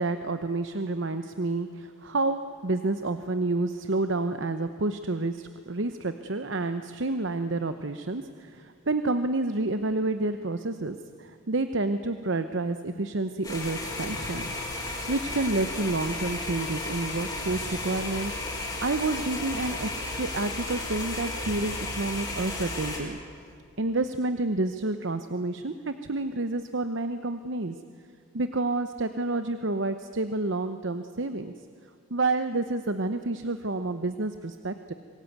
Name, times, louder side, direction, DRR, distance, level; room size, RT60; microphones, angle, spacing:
voice 1, 0.0-14.5 15.1-18.4 18.8-23.2 23.8-27.8 28.3-31.5 32.1-34.9, right 2 dB, 65° right, 9 dB, 0.9 m, -29 dB
sound 1, 13.4-23.0, left 2 dB, 20° left, 5.2 m, -34 dB
25.0 x 21.0 x 9.3 m, 2.2 s
head